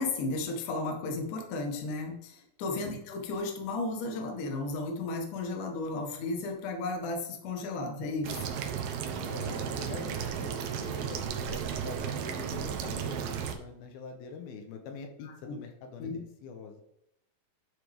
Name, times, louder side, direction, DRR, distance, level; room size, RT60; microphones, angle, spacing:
voice 1, 0.0-8.5 15.2-15.6 16.0-16.2, left 3 dB, 65° left, 3 dB, 2.8 m, -34 dB
sound 1, 8.2-13.5, right 7 dB, 90° right, 2.9 m, -34 dB
voice 2, 9.3-11.2 11.5-16.8, left 5 dB, 85° left, 4 dB, 3.0 m, -44 dB
11.5 x 6.7 x 3.6 m, 0.80 s
omnidirectional pair, 4.2 m